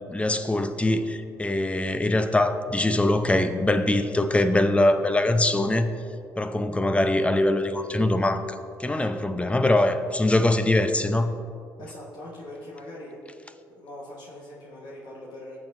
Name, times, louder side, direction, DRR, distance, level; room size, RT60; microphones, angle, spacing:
voice 1, 0.1-5.9 6.4-11.4, left 1 dB, 15° left, 9 dB, 0.7 m, -23 dB
voice 2, 11.8-13.2 13.7-15.6, left 1 dB, 65° left, -4 dB, 1.7 m, -42 dB
15.0 x 6.8 x 2.7 m, 2.5 s
hypercardioid pair, 60°, 8 cm